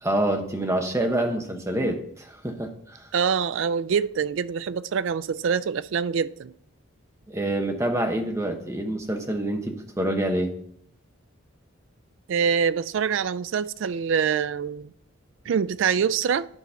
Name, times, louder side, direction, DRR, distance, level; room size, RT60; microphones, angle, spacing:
voice 1, 0.0-3.0 7.3-10.5, right 1 dB, 15° right, 0.9 m, -27 dB
voice 2, 3.1-6.5 12.3-14.9 15.5-16.5, right 7 dB, 60° right, 0.3 m, -25 dB
10.5 x 4.1 x 5.6 m
head